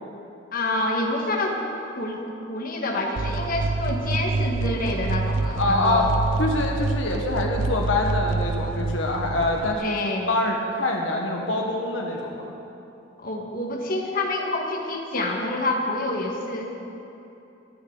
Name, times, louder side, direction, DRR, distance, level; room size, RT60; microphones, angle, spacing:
voice 1, 0.5-1.6 2.0-6.1 9.8-10.4 13.2-16.7, left 2 dB, 50° left, 0 dB, 1.8 m, -27 dB
sound 1, 3.2-9.7, right 3 dB, 85° right, 0.6 m, -27 dB
voice 2, 5.6-6.1 6.4-12.5, left 2 dB, 85° left, 1 dB, 1.4 m, -25 dB
26.0 x 9.7 x 4.0 m, 2.9 s
head